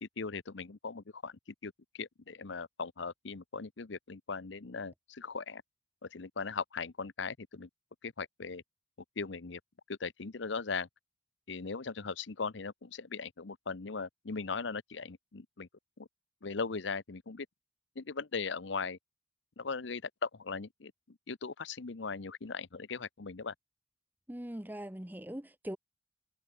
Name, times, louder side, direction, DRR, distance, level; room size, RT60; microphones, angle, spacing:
voice 1, 0.0-5.6 6.1-7.7 8.0-8.6 9.2-9.6 9.9-10.9 11.5-15.7 16.0-16.1 16.4-17.5 18.0-19.0 19.6-20.9 21.3-23.5, left 4 dB, 65° left, 0.8 m, -39 dB
voice 2, 24.3-25.8, equal, 10° right, 0.9 m, -41 dB
head